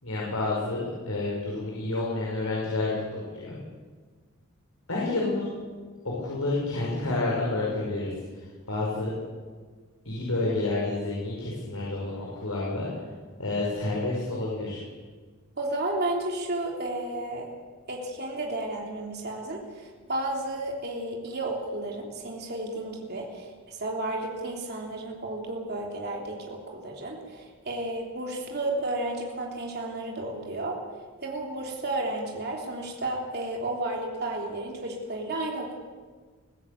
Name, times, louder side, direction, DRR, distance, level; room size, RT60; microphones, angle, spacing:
voice 1, 0.0-3.6 4.9-5.5 6.2-8.1 8.7-9.1 10.1-12.9 13.4-14.8, left 2 dB, 75° left, -4 dB, 5.4 m, -29 dB
voice 2, 15.6-17.5 17.9-30.8 31.2-35.8, right 2 dB, 45° right, 0 dB, 3.2 m, -32 dB
22.5 x 15.5 x 8.4 m, 1.5 s
head